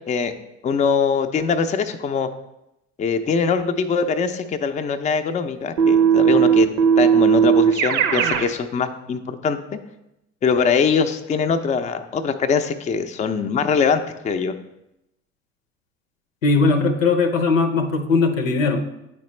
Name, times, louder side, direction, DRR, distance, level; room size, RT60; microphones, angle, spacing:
voice 1, 0.6-2.3 3.0-6.7 7.0-9.8 10.4-14.5, left 5 dB, 20° left, 7 dB, 0.5 m, -22 dB
Keyboard (musical), 5.8-8.5, right 8 dB, 70° right, 0.7 m, -16 dB
voice 2, 16.4-18.8, left 4 dB, 90° left, 6 dB, 0.7 m, -19 dB
9.2 x 4.2 x 3.2 m, 0.88 s
hypercardioid pair, 70°, 38 cm